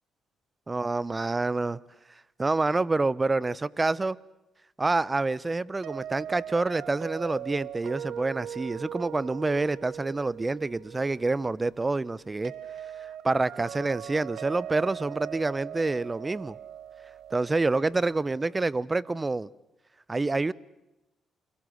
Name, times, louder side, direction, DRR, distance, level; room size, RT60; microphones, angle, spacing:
voice 1, 0.7-1.8 2.1-4.2 4.8-12.5 13.0-16.6 17.3-19.5 20.1-20.5, right 3 dB, 20° right, 0.8 m, -27 dB
sound 1, 5.8-18.7, right 10 dB, 75° right, 0.9 m, -41 dB
29.5 x 23.0 x 6.5 m
cardioid pair, 90°, 0 cm